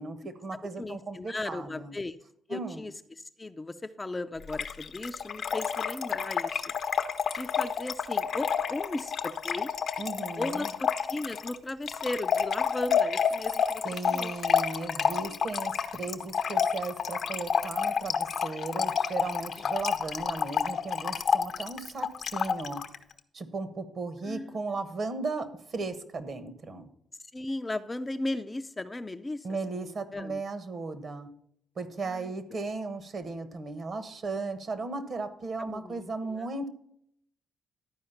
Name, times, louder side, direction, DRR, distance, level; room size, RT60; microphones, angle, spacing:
voice 1, 0.0-1.9 2.5-2.9 10.0-10.7 13.8-22.8 23.3-26.9 29.4-31.3 31.8-36.7, right 3 dB, 50° right, 10 dB, 1.2 m, -36 dB
voice 2, 0.8-2.2 2.5-2.9 3.4-6.6 7.3-9.7 10.4-14.3 24.3-24.6 27.2-29.5 29.8-30.4 32.0-32.6 35.6-36.5, left 2 dB, 20° left, 9 dB, 0.4 m, -36 dB
Trickle dribble / Fill (with liquid), 4.5-23.0, left 7 dB, 55° left, 0.7 m, -29 dB
11.5 x 4.7 x 5.7 m, 0.71 s
cardioid pair, 90°, 0 cm